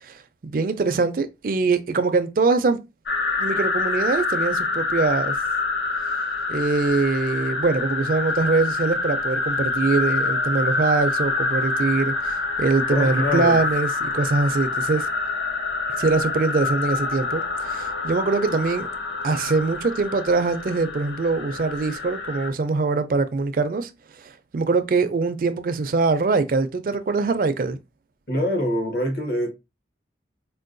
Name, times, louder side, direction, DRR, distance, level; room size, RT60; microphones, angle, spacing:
voice 1, 0.0-2.8 3.4-5.4 6.5-15.1 16.0-18.9 19.2-23.9 24.2-27.8, right 3 dB, 50° right, 0.4 m, -23 dB
sound 1, 3.1-22.5, left 3 dB, 85° left, 0.7 m, -26 dB
voice 2, 12.9-13.7 28.3-29.5, equal, 60° left, 1.1 m, -24 dB
4.5 x 2.1 x 2.5 m
head